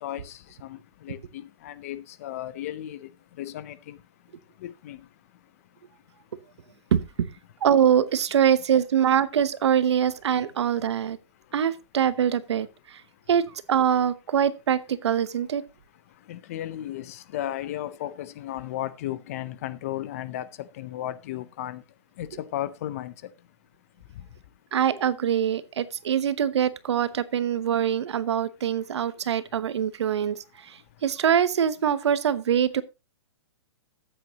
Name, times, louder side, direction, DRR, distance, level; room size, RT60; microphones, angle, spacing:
voice 1, 0.0-3.1 3.4-4.0 4.6-5.1 16.3-21.8 22.2-23.1, left 13 dB, 30° left, 0.5 m, -35 dB
voice 2, 6.9-7.3 7.6-11.2 11.5-13.0 13.3-15.6 24.7-32.8, right 9 dB, 65° right, 0.9 m, -24 dB
13.5 x 8.7 x 2.8 m
hypercardioid pair, 165°, 15 cm